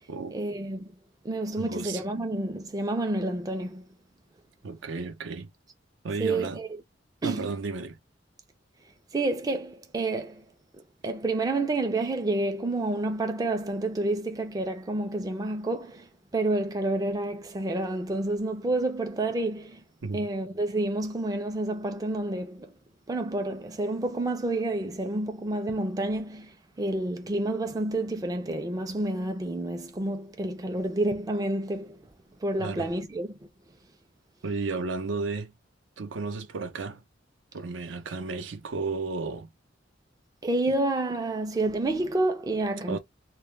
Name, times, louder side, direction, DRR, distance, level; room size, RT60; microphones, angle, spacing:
voice 1, 0.3-0.9 1.2-3.8 6.2-6.7 7.2-7.5 9.1-10.4 11.0-19.8 20.1-22.7 23.1-32.0 32.4-33.3 40.4-43.0, right 2 dB, 20° right, 0.3 m, -29 dB
voice 2, 1.6-2.0 4.6-5.5 6.0-6.6 7.2-8.0 20.0-20.3 32.6-32.9 34.4-35.5 36.0-37.0 37.5-39.5 42.9-43.0, right 4 dB, 75° right, 0.5 m, -33 dB
2.1 x 2.1 x 3.1 m
head